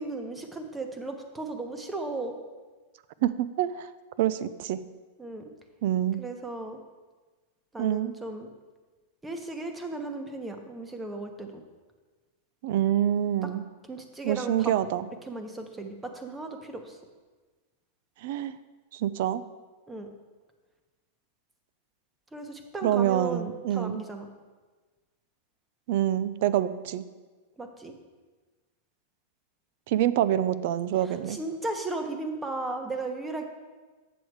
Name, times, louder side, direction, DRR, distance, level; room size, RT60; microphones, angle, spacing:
voice 1, 0.0-2.4 5.2-5.5 6.2-6.8 7.7-8.5 9.2-11.6 13.4-13.5 13.9-14.7 15.2-17.0 19.9-20.1 22.3-24.3 27.6-27.9 31.0-33.4, right 2 dB, 10° right, 5 dB, 0.9 m, -36 dB
voice 2, 3.2-3.9 4.2-4.8 5.8-6.2 7.8-8.1 12.6-13.6 14.2-15.1 18.2-18.5 18.9-19.4 22.8-24.0 25.9-27.0 29.9-31.4, right 11 dB, 60° right, 15 dB, 0.4 m, -26 dB
8.0 x 6.4 x 4.7 m, 1.3 s
hypercardioid pair, 135°, 0 cm